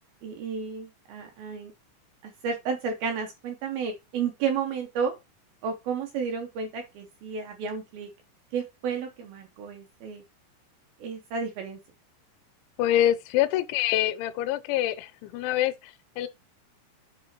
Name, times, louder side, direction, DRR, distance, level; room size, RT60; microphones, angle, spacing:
voice 1, 0.2-1.7 2.2-5.1 5.6-8.1 8.5-10.2 11.0-11.8, right 6 dB, 75° right, 2.3 m, -32 dB
voice 2, 12.8-16.3, left 12 dB, 85° left, 3.0 m, -26 dB
8.9 x 3.8 x 4.5 m
omnidirectional pair, 5.3 m